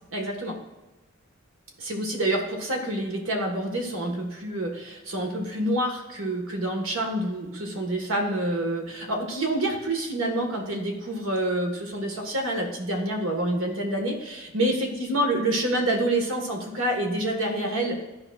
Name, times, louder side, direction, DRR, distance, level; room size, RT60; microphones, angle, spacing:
voice 1, 0.1-0.6 1.8-18.0, right 1 dB, 75° right, 1 dB, 1.5 m, -27 dB
12.5 x 4.9 x 2.4 m, 1.1 s
head